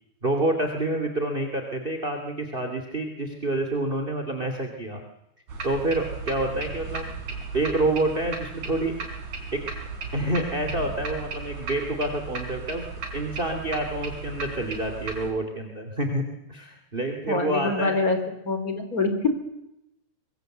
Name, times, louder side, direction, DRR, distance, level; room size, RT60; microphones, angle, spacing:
voice 1, 0.2-5.0 5.6-7.1 7.5-9.0 9.5-9.6 10.1-12.9 13.1-16.2 16.5-18.1, right 1 dB, 15° right, 5 dB, 2.2 m, -28 dB
sound 1, 5.5-15.3, right 4 dB, 50° right, 5.1 m, -35 dB
voice 2, 17.3-18.2 18.4-19.3, left 3 dB, 25° left, 8 dB, 3.6 m, -25 dB
24.0 x 23.5 x 7.9 m, 0.84 s
omnidirectional pair, 4.5 m